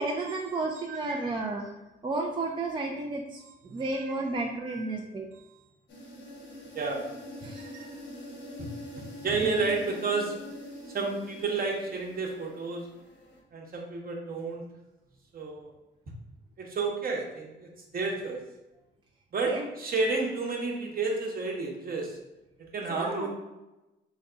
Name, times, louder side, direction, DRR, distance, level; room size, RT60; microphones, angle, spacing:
voice 1, 0.0-1.7 2.0-5.3 7.4-7.7 9.4-9.6 19.5-19.7 22.9-23.3, right 2 dB, 25° right, -1 dB, 0.5 m, -32 dB
voice 2, 0.9-1.4 4.7-4.9 6.7-7.1 7.5-7.9 8.6-8.7 9.0-10.3 10.9-12.9 13.5-14.6 15.3-15.7 16.6-18.4 19.3-22.2 22.7-23.3, right 3 dB, 45° right, 0 dB, 1.0 m, -31 dB
sound 1, 5.9-13.4, left 1 dB, 70° left, 1.1 m, -45 dB
4.0 x 2.3 x 3.8 m, 1.0 s
cardioid pair, 90°, 20 cm